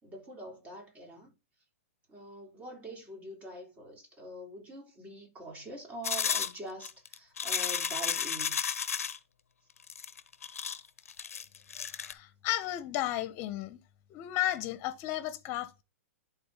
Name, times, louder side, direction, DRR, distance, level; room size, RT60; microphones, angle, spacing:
voice 1, 0.0-1.3 2.1-8.6, right 1 dB, 20° right, 3.5 m, -44 dB
sound 1, 6.0-9.2 9.9-12.1, left 7 dB, 85° left, 0.8 m, -33 dB
voice 2, 11.8-13.8 14.1-15.8, left 14 dB, 40° left, 1.2 m, -34 dB
11.0 x 4.1 x 4.1 m
hypercardioid pair, 125°, 8 cm